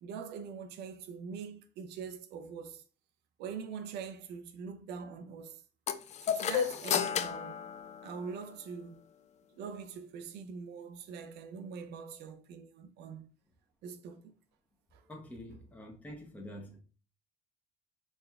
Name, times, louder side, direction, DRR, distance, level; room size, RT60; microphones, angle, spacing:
voice 1, 0.0-2.8 3.4-5.6 6.2-7.7 8.0-9.0 9.6-13.3 13.8-14.3 14.9-15.0, right 6 dB, 80° right, 0.6 m, -43 dB
sound 1, 5.9-8.6, left 8 dB, 45° left, 0.4 m, -33 dB
voice 2, 15.1-16.8, left 1 dB, 10° left, 0.8 m, -46 dB
4.2 x 3.3 x 2.3 m
cardioid pair, 110°, 17 cm